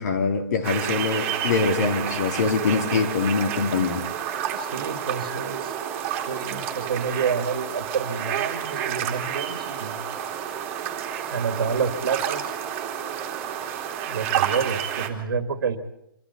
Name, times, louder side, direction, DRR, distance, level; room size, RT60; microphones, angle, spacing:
voice 1, 0.0-4.4, left 4 dB, 50° left, 6 dB, 2.9 m, -24 dB
sound 1, 0.6-15.1, right 9 dB, 20° right, 2.9 m, -30 dB
voice 2, 4.5-5.8 6.3-10.0 11.3-12.5 14.1-15.8, right 6 dB, 85° right, 7 dB, 2.1 m, -28 dB
26.0 x 14.0 x 8.2 m, 0.79 s
hypercardioid pair, 165°, 12 cm